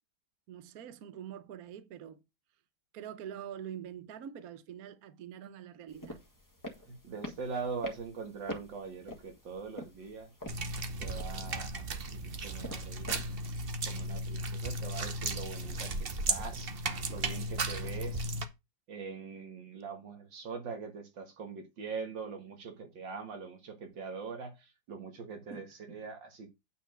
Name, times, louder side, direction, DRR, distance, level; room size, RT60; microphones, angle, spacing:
voice 1, 0.5-2.2 2.9-6.2 25.5-26.0, right 9 dB, 60° right, 1.2 m, -45 dB
sound 1, 5.9-13.4, left 1 dB, 10° left, 1.7 m, -47 dB
voice 2, 6.9-10.3 11.0-13.3 13.8-16.7 17.1-18.3 18.9-26.5, right 5 dB, 85° right, 2.6 m, -42 dB
sound 2, 10.5-18.4, right 2 dB, 40° right, 0.9 m, -35 dB
9.0 x 4.3 x 6.4 m
omnidirectional pair, 2.0 m